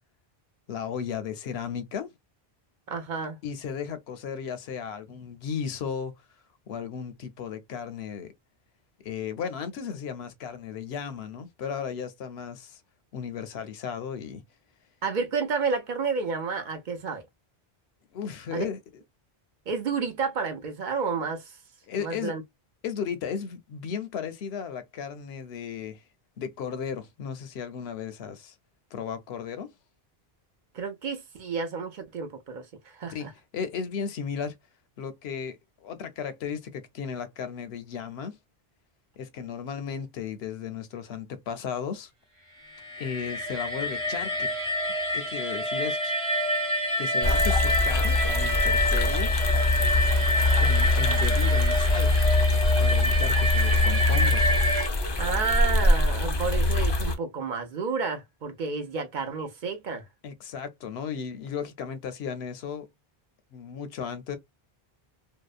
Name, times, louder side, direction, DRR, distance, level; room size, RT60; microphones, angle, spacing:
voice 1, 0.7-2.1 3.4-6.1 6.7-8.3 9.0-12.8 13.1-14.4 18.1-18.8 21.9-22.3 22.8-26.0 26.4-28.5 28.9-29.7 33.1-33.3 33.5-34.6 35.0-38.4 39.2-42.1 43.0-44.5 45.1-46.1 47.0-49.3 50.6-52.1 52.8-54.4 60.2-62.9 63.5-64.4, left 7 dB, 80° left, 0.8 m, -35 dB
voice 2, 2.9-3.4 15.0-17.3 18.5-18.7 19.7-21.6 22.0-22.4 30.7-33.3 55.2-60.0, right 5 dB, 55° right, 0.6 m, -30 dB
sound 1, 42.6-54.9, left 1 dB, 30° right, 1.0 m, -28 dB
sound 2, 47.2-57.1, left 2 dB, 40° left, 0.4 m, -23 dB
2.8 x 2.0 x 2.3 m
omnidirectional pair, 1.0 m